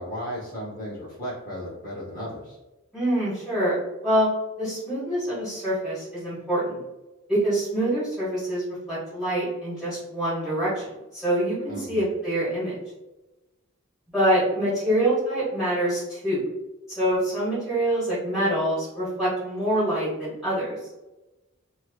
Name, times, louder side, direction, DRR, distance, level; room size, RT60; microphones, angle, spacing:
voice 1, 0.0-2.6 11.7-12.0, equal, 40° left, -7 dB, 0.8 m, -35 dB
voice 2, 2.9-3.8 4.0-4.3 4.6-6.8 7.3-10.8 11.1-12.8 14.1-16.5 16.9-20.8, right 1 dB, ahead, -14 dB, 1.3 m, -25 dB
3.1 x 2.8 x 2.2 m, 1.0 s
head